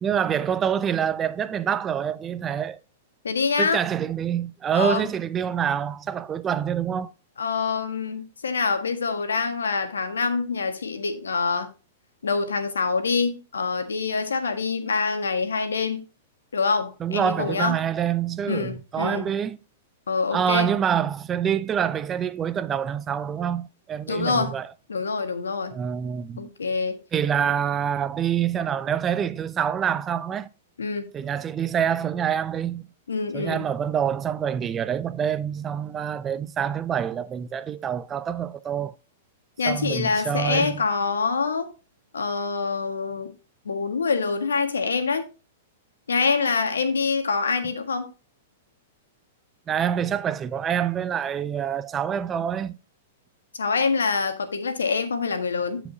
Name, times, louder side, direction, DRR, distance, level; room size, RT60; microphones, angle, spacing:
voice 1, 0.0-2.8 3.6-7.1 17.0-19.6 20.3-24.7 25.7-26.5 27.1-30.5 31.1-32.8 33.3-39.0 39.7-40.8 49.7-52.8, right 8 dB, 25° right, 0.5 m, -26 dB
voice 2, 3.2-3.8 4.7-5.1 7.4-11.7 12.2-16.0 16.5-17.8 18.5-19.2 20.1-20.7 24.1-24.5 24.9-25.7 26.4-27.0 30.8-31.1 33.1-33.7 39.6-41.7 42.1-43.3 43.6-45.2 46.1-48.1 53.6-55.8, left 4 dB, 85° left, 1.6 m, -25 dB
14.0 x 5.0 x 2.8 m
hypercardioid pair, 115°, 0 cm